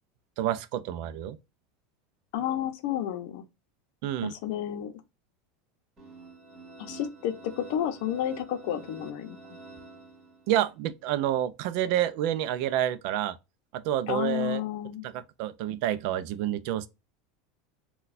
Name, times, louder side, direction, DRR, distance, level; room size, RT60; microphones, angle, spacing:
voice 1, 0.4-1.4 4.0-4.3 10.5-13.4 13.7-14.6 15.0-16.9, right 12 dB, 65° right, 0.4 m, -28 dB
voice 2, 2.3-3.4 4.2-4.9 6.8-9.4 14.1-15.1, left 11 dB, 70° left, 0.6 m, -31 dB
sound 1, 6.0-10.7, right 3 dB, 30° right, 1.5 m, -48 dB
3.9 x 2.2 x 2.5 m
supercardioid pair, 120°, 0 cm